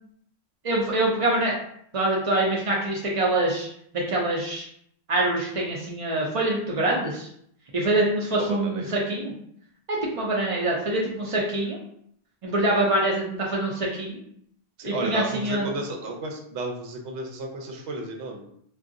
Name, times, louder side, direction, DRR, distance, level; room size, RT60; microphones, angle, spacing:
voice 1, 0.6-1.6 1.9-3.7 3.9-4.7 5.1-7.3 7.7-9.3 9.9-11.8 12.4-14.2 14.8-15.7, right 1 dB, 45° right, -4 dB, 0.4 m, -25 dB
voice 2, 8.3-9.0 14.8-18.5, right 2 dB, 90° right, 2 dB, 0.9 m, -33 dB
3.5 x 2.3 x 2.5 m, 0.68 s
omnidirectional pair, 1.1 m